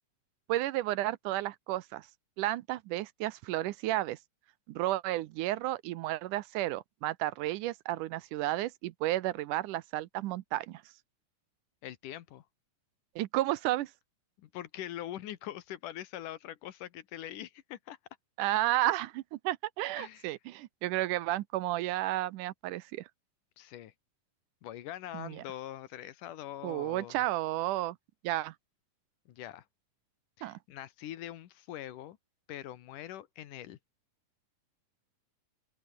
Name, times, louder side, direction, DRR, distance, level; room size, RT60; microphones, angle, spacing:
voice 1, 0.5-2.1 2.4-4.2 4.7-10.8 13.2-13.9 18.4-23.0 25.1-25.4 26.6-28.0 28.2-28.5 30.4-30.6, right 16 dB, 80° right, 2.2 m, -32 dB
voice 2, 11.8-12.4 14.4-18.0 20.0-20.3 23.6-23.9 24.6-27.3 29.3-29.6 30.4-32.2 32.5-33.8, left 12 dB, 80° left, 2.8 m, -43 dB
open air
omnidirectional pair, 3.8 m